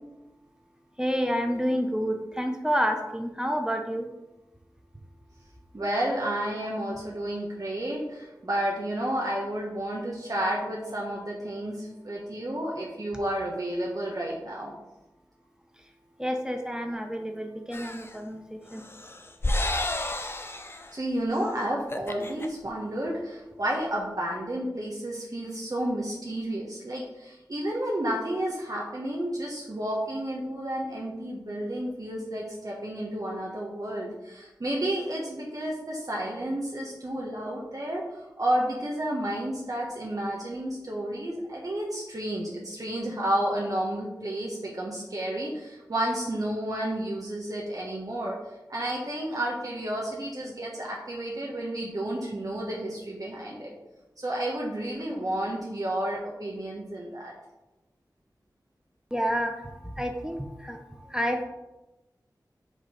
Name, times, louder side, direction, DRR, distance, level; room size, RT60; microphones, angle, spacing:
voice 1, 1.0-4.1 16.2-18.8 59.1-61.4, equal, 10° right, 4 dB, 0.8 m, -29 dB
voice 2, 5.7-14.7 20.9-38.0 38.4-48.3 48.7-53.8 54.2-57.3, right 1 dB, 55° right, -3 dB, 1.2 m, -31 dB
sound 1, 17.7-18.2 18.7-20.9 21.3-21.5 21.8-22.5, left 1 dB, 30° left, 0.6 m, -31 dB
6.4 x 3.1 x 5.5 m, 1.0 s
cardioid pair, 40°, 7 cm